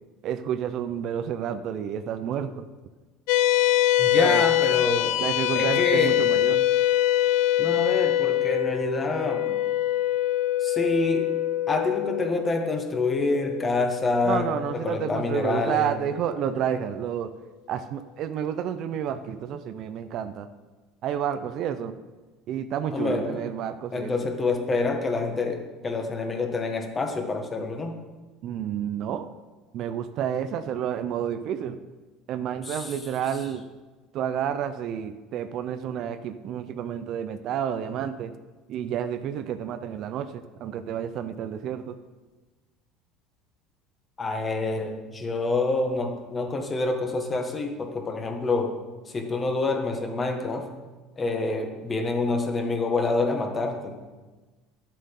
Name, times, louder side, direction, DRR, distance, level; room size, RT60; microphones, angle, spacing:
voice 1, 0.2-2.7 4.2-4.4 5.2-6.7 14.2-17.3 17.7-20.5 21.0-21.9 22.5-24.3 28.4-29.3 29.7-31.8 32.3-33.6 34.1-38.3 38.7-42.0, right 9 dB, 55° right, 11 dB, 0.6 m, -30 dB
sound 1, 3.3-15.9, left 13 dB, 75° left, 0.5 m, -25 dB
voice 2, 4.0-5.2 5.5-6.2 7.6-9.6 10.6-11.3 11.7-15.9 22.9-23.4 23.9-28.0 32.7-32.9 44.2-48.7 49.1-50.7 51.2-54.0, left 3 dB, 25° left, 4 dB, 1.5 m, -27 dB
11.0 x 7.6 x 5.5 m, 1.3 s
cardioid pair, 125°, 0 cm